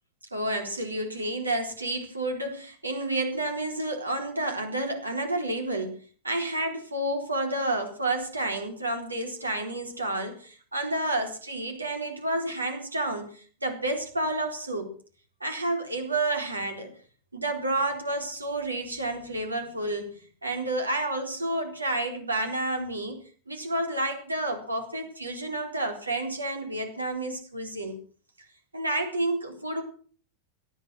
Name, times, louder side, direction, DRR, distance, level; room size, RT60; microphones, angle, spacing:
voice 1, 0.3-6.0 6.2-14.9 15.4-16.9 17.3-20.1 20.4-23.2 23.5-28.0 28.7-29.8, right 2 dB, 80° right, 5 dB, 4.0 m, -30 dB
18.0 x 11.5 x 6.2 m, 0.44 s
figure-of-eight pair, 90°, 0 cm